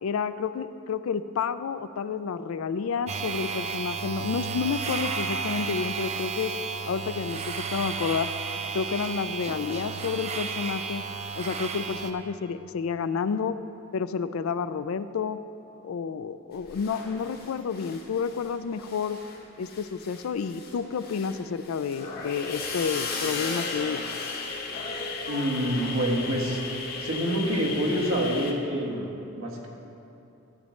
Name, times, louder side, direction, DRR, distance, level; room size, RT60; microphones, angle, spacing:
voice 1, 0.0-6.5 6.9-8.3 8.7-11.0 11.4-13.6 13.9-15.4 15.8-19.2 19.6-24.0, left 6 dB, 80° left, 13 dB, 0.4 m, -30 dB
sound 1, 3.1-12.1, right 5 dB, 30° right, 0.5 m, -33 dB
sound 2, 16.7-18.5 18.8-28.5, left 4 dB, 50° left, 1.1 m, -35 dB
voice 2, 25.3-26.6 27.0-29.7, equal, 80° right, -2 dB, 1.6 m, -27 dB
14.0 x 8.1 x 3.2 m, 2.9 s
head